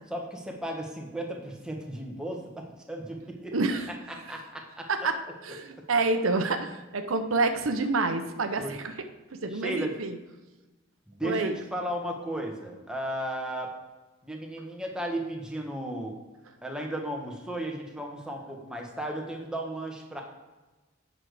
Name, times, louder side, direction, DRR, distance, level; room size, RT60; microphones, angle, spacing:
voice 1, 0.1-3.5 4.1-5.1 8.6-8.8 9.5-10.0 11.1-13.7 14.2-16.1 16.6-20.2, right 1 dB, 5° right, 0 dB, 1.2 m, -35 dB
voice 2, 3.5-3.9 4.9-8.8 9.4-10.1 11.2-11.5, right 3 dB, 80° right, 7 dB, 0.8 m, -28 dB
8.7 x 6.5 x 4.8 m, 1.2 s
head